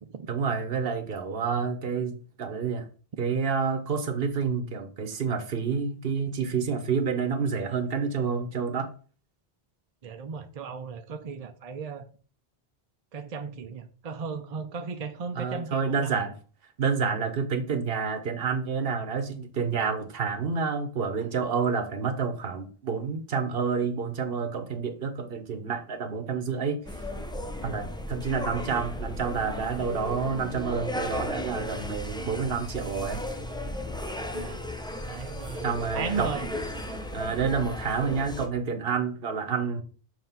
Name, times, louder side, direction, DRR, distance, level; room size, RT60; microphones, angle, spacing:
voice 1, 0.3-2.9 3.2-8.9 15.3-16.3 16.8-26.8 27.6-33.2 35.6-36.3 37.1-39.8, right 5 dB, 65° right, 1.1 m, -29 dB
voice 2, 10.0-12.0 13.1-16.2 34.3-34.6 35.1-36.5, right 5 dB, 45° right, 0.6 m, -36 dB
sound 1, 26.9-38.5, left 1 dB, 5° left, 0.4 m, -35 dB
7.4 x 2.9 x 5.7 m
omnidirectional pair, 1.0 m